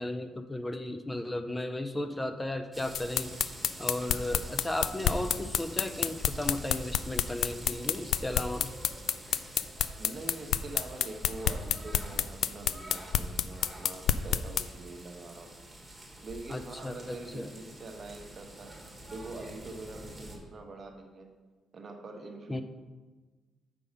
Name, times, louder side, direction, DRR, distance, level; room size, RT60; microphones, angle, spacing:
voice 1, 0.0-3.3 3.8-8.7 16.5-17.5 22.5-22.6, left 1 dB, 15° left, 8 dB, 0.5 m, -35 dB
sound 1, 2.7-20.4, right 1 dB, 10° right, 1.6 m, -47 dB
sound 2, 2.9-14.6, left 10 dB, 75° left, 0.3 m, -28 dB
voice 2, 10.0-15.5 16.2-21.3 21.7-22.6, right 2 dB, 45° right, 3 dB, 1.2 m, -44 dB
6.7 x 5.3 x 5.2 m, 1.3 s
cardioid pair, 90°, 0 cm